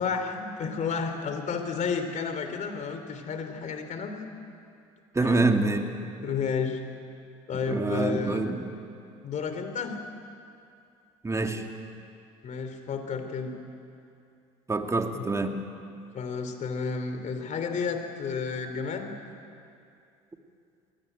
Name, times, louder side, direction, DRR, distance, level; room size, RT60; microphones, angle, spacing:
voice 1, 0.0-4.2 5.2-5.5 6.0-6.8 7.5-8.4 9.2-10.0 12.4-13.5 15.1-15.3 16.1-19.1, left 5 dB, 45° left, 7 dB, 3.3 m, -31 dB
voice 2, 5.1-5.8 7.7-8.6 11.2-11.6 14.7-15.6, right 3 dB, 15° right, 4 dB, 2.4 m, -26 dB
22.0 x 17.5 x 9.4 m, 2.5 s
hypercardioid pair, 70°, 17 cm